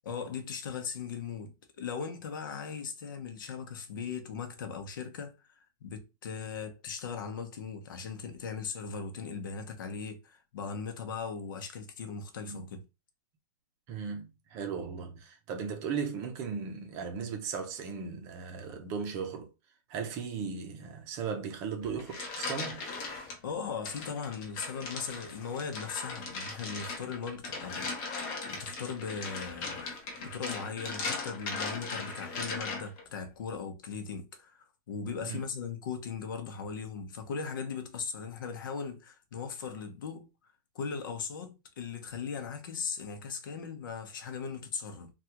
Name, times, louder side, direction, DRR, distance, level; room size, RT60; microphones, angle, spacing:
voice 1, 0.0-12.8 23.4-29.9 30.2-40.3 40.7-45.1, left 6 dB, 70° left, 0.8 m, -39 dB
voice 2, 13.9-19.5 19.9-22.8 35.2-35.4, right 6 dB, 25° right, 0.6 m, -37 dB
sound 1, 21.8-23.4 23.8-33.0, left 3 dB, 30° left, 0.8 m, -38 dB
3.3 x 2.3 x 2.9 m
supercardioid pair, 175°, 11 cm